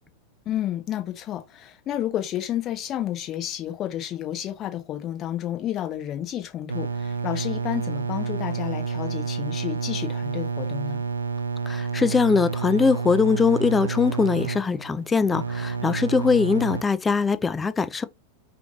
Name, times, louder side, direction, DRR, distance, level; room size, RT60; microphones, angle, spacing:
voice 1, 0.4-11.0, left 11 dB, 30° left, 1.0 m, -31 dB
sound 1, 6.7-16.8, right 5 dB, 75° right, 0.4 m, -29 dB
voice 2, 11.7-18.0, left 5 dB, 15° left, 0.4 m, -22 dB
5.0 x 3.1 x 2.4 m
figure-of-eight pair, 90°, 0 cm